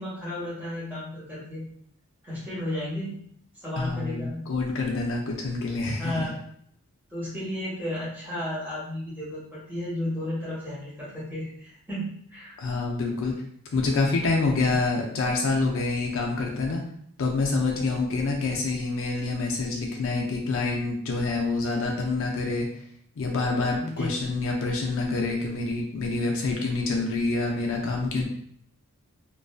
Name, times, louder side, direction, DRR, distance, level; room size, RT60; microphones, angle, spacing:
voice 1, 0.0-1.6 2.2-3.2 3.6-4.5 6.0-6.4 7.1-12.6 23.8-24.2, left 1 dB, 10° right, -9 dB, 1.2 m, -33 dB
voice 2, 3.8-6.3 12.6-13.3 13.7-16.8 17.2-22.7 23.2-28.3, left 3 dB, 60° left, 0 dB, 0.4 m, -27 dB
2.5 x 2.2 x 2.3 m, 0.66 s
head